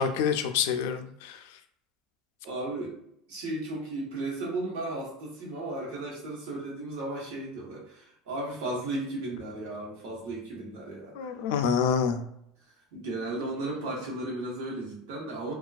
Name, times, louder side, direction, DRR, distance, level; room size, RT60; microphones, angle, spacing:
voice 1, 0.0-1.4 11.1-12.2, left 7 dB, 75° left, 7 dB, 0.3 m, -27 dB
voice 2, 2.4-3.0 3.3-11.3 12.9-15.5, right 2 dB, 75° right, -4 dB, 1.0 m, -35 dB
2.3 x 2.3 x 2.4 m, 0.73 s
cardioid pair, 155°, 0 cm